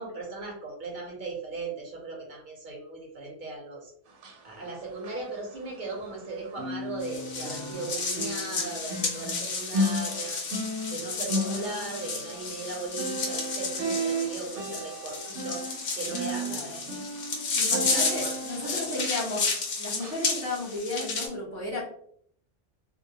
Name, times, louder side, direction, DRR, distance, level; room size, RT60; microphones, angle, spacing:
voice 1, 0.0-3.9 4.4-10.4 10.9-15.6 15.9-17.0 17.7-19.0, right 3 dB, 50° right, -1 dB, 0.7 m, -38 dB
sound 1, 4.1-6.2 6.5-19.6 20.0-20.2 20.7-20.8, equal, 85° right, 0.9 m, -35 dB
sound 2, 7.0-21.3, left 4 dB, 60° left, 0.7 m, -32 dB
voice 2, 16.3-16.8 17.5-19.4 19.8-21.8, left 2 dB, 20° right, -7 dB, 0.4 m, -34 dB
2.2 x 2.0 x 2.7 m, 0.65 s
omnidirectional pair, 1.2 m